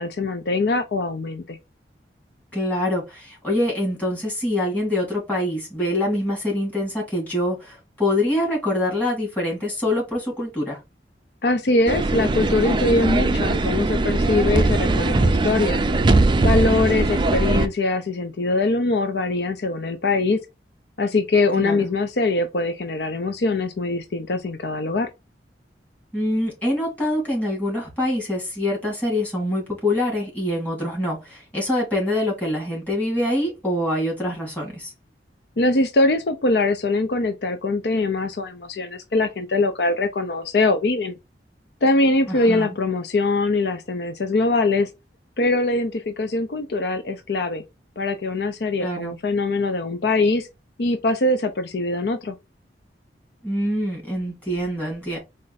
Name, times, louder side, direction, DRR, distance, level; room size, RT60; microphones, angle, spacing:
voice 1, 0.0-1.6 11.4-15.8 16.4-20.4 21.0-25.1 35.6-41.2 41.8-44.9 45.4-47.6 48.0-50.5 50.8-52.3, left 2 dB, 65° left, 0.5 m, -22 dB
voice 2, 2.5-10.8 21.6-21.9 26.1-34.9 42.2-42.8 48.8-49.2 53.4-55.2, left 1 dB, 10° left, 2.6 m, -25 dB
sound 1, 11.9-17.7, right 2 dB, 25° right, 0.4 m, -20 dB
4.3 x 2.5 x 3.9 m
head